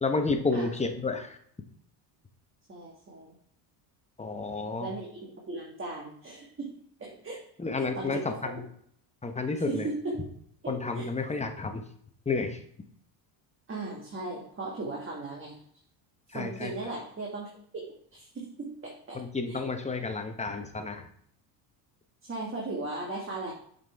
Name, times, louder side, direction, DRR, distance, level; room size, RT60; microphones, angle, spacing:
voice 1, 0.0-1.4 4.2-4.9 7.6-8.6 9.2-9.9 10.7-11.8 12.3-12.6 16.3-16.7 19.1-21.1, left 3 dB, 15° left, 5 dB, 1.0 m, -31 dB
voice 2, 2.7-3.3 4.8-6.7 7.0-7.4 7.9-8.5 9.7-10.3 10.6-11.1 13.7-15.6 16.3-17.8 18.1-19.2 19.5-19.6 22.2-23.5, right 2 dB, 25° right, -2 dB, 1.6 m, -37 dB
7.2 x 5.5 x 3.5 m, 0.65 s
supercardioid pair, 90°, 49 cm